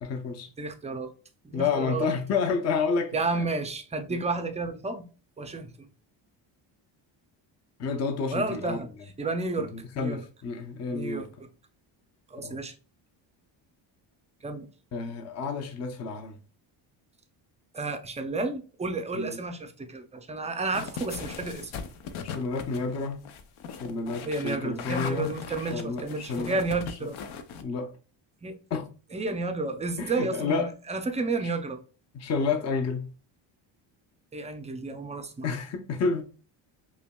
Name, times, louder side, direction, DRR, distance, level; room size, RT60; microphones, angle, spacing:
voice 1, 0.0-0.5 1.5-3.4 4.1-4.2 7.8-8.8 9.7-11.3 12.4-12.6 14.9-16.4 19.1-19.4 22.2-23.2 23.7-26.6 26.9-27.0 27.6-28.0 28.7-28.9 30.0-30.7 31.4-31.5 32.1-33.1 35.4-36.2, left 4 dB, 35° left, 0.6 m, -30 dB
voice 2, 0.6-1.1 1.4-2.1 3.1-5.1 5.4-5.9 8.3-8.9 9.2-10.2 10.9-11.3 12.3-12.7 14.4-14.7 17.7-21.7 24.3-27.2 28.4-28.5 29.1-31.8 34.3-35.5, right 3 dB, 15° right, 0.4 m, -31 dB
sound 1, 20.7-27.6, left 6 dB, 70° left, 0.7 m, -39 dB
5.7 x 2.2 x 2.2 m
cardioid pair, 100°, 49 cm